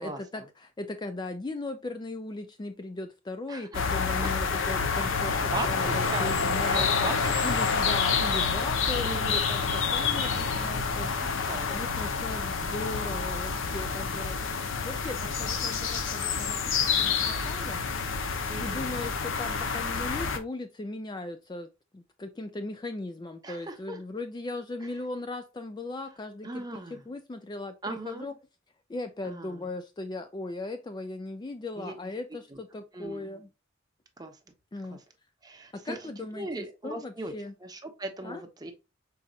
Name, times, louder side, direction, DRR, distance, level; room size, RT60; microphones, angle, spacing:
voice 1, 0.0-7.1 7.4-11.4 11.7-14.4 14.8-17.8 18.6-21.7 21.9-28.3 28.9-33.5 34.7-35.0 35.7-37.5 38.2-38.4, left 2 dB, 20° left, 0.3 m, -38 dB
voice 2, 3.5-4.3 4.6-4.7 5.3-7.4 9.0-9.4 10.2-10.6 11.5-11.7 18.5-18.9 23.4-24.0 26.4-27.0 27.8-28.3 29.3-29.6 31.8-31.9 32.5-32.6 32.9-33.3 34.2-34.4 34.9-35.0 35.4-37.3 37.6-38.7, right 2 dB, 20° right, 0.8 m, -39 dB
sound 1, 3.7-20.4, left 5 dB, 70° left, 0.6 m, -28 dB
5.3 x 4.0 x 2.3 m
head